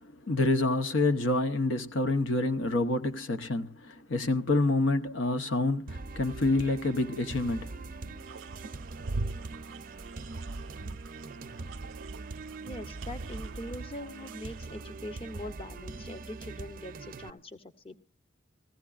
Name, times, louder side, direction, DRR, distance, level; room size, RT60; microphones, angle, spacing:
voice 1, 0.0-7.8, left 2 dB, 80° left, 0.9 m, -28 dB
sound 1, 5.9-17.3, right 3 dB, 45° right, 0.5 m, -42 dB
sound 2, 8.2-15.4, right 2 dB, 90° right, 0.6 m, -42 dB
voice 2, 12.6-18.0, left 1 dB, 30° left, 0.8 m, -42 dB
21.0 x 15.5 x 2.4 m
head